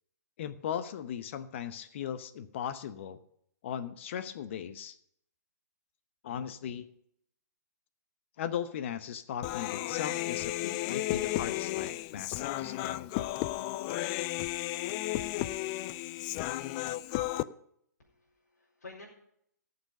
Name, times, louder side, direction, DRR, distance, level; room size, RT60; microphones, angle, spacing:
voice 1, 0.4-3.2 3.6-5.0 6.2-6.8 8.4-13.1, left 9 dB, 40° left, 12 dB, 0.9 m, -38 dB
Human voice, 9.4-17.4, left 16 dB, 25° left, 0.4 m, -33 dB
voice 2, 18.0-19.1, left 3 dB, 65° left, -5 dB, 4.2 m, -51 dB
17.0 x 6.9 x 5.4 m, 0.71 s
figure-of-eight pair, 125°, 9 cm